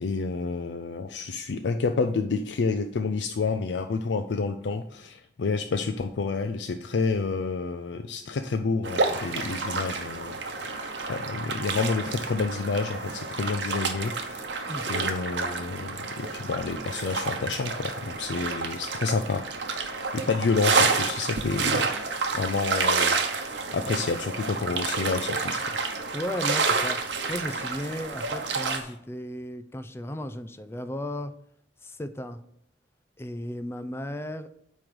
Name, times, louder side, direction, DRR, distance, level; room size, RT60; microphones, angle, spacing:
voice 1, 0.0-10.8 11.1-14.5 14.9-19.4 19.8-21.9 22.3-25.6, left 4 dB, 75° left, 6 dB, 0.4 m, -29 dB
sound 1, 8.8-28.8, right 4 dB, 80° right, 0.9 m, -29 dB
sound 2, 9.2-11.2 12.7-13.7 14.7-14.8 15.4-15.5 15.7-15.8 17.7-18.0 20.8-20.9 21.9-22.0 23.5-23.6 23.8-23.9 24.2-24.3 24.5-24.6 24.7-24.8 25.0-25.1 25.3-25.4, equal, 15° right, 3.3 m, -50 dB
voice 2, 26.1-27.0 27.3-31.3 31.8-32.4 33.2-34.5, equal, 15° left, 10 dB, 0.5 m, -35 dB
8.7 x 3.2 x 6.1 m, 0.71 s
head